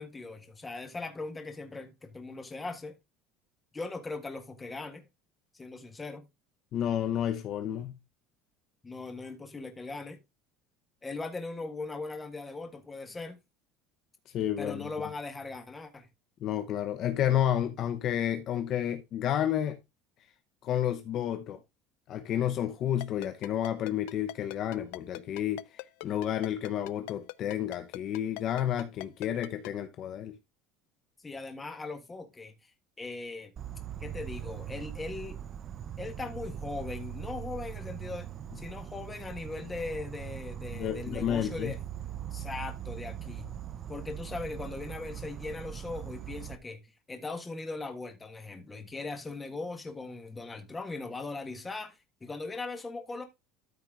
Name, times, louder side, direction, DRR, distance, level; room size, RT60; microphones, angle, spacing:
voice 1, 0.0-3.0 3.7-5.0 5.5-6.2 8.8-10.2 11.0-13.4 14.6-16.1 31.2-32.7 33.0-33.5 34.0-35.4 36.0-38.3 38.5-41.8 42.3-43.5 43.9-46.8 47.1-53.2, left 3 dB, 15° left, 1.6 m, -39 dB
voice 2, 6.7-8.0 14.3-14.9 16.4-19.8 20.6-21.6 22.1-30.4 40.7-41.7, left 10 dB, 40° left, 0.8 m, -31 dB
Ringtone, 23.0-29.7, left 23 dB, 80° left, 0.4 m, -40 dB
Insect, 33.6-46.6, right 10 dB, 30° right, 0.5 m, -41 dB
13.0 x 4.5 x 3.7 m
cardioid pair, 165°, 0 cm